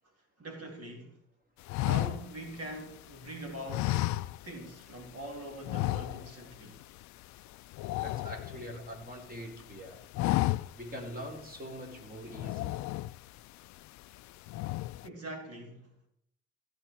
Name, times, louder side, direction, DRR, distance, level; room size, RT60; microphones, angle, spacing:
voice 1, 0.4-1.2 1.8-4.0 4.4-6.8 15.0-15.9, right 1 dB, 50° right, 3.4 m, -43 dB
sound 1, 1.7-3.2 3.7-4.8 5.0-5.2 5.6-6.5 6.8-7.0 7.3-9.0 9.5-9.7 10.0-11.0 11.4-11.5 12.3-13.4 13.9-14.2 14.5-15.1, left 17 dB, 60° left, 0.5 m, -32 dB
voice 2, 8.0-10.1 10.8-12.8, equal, 25° right, 4.6 m, -43 dB
15.5 x 7.6 x 4.7 m
figure-of-eight pair, 40°, 32 cm